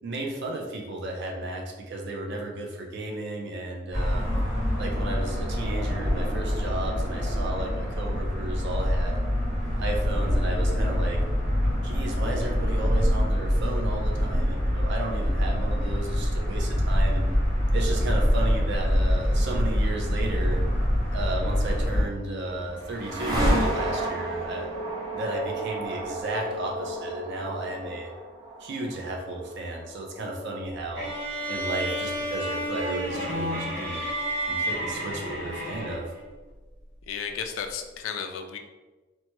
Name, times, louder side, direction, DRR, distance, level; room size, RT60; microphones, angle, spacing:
voice 1, 0.0-4.4 4.8-9.2 9.8-11.2 11.8-17.3 17.7-20.6 21.1-24.7 25.1-28.1 28.6-31.1 31.5-34.1 34.4-36.1, right 2 dB, 60° right, 0 dB, 0.5 m, -33 dB
sound 1, 3.9-22.0, equal, 40° right, 1.3 m, -25 dB
sound 2, 22.1-31.9, right 1 dB, 20° right, 0.6 m, -31 dB
sound 3, 31.0-36.2, right 1 dB, 75° right, 1.2 m, -31 dB
voice 2, 37.1-38.6, left 7 dB, 75° left, 5 dB, 0.3 m, -33 dB
3.0 x 2.1 x 3.0 m, 1.2 s
head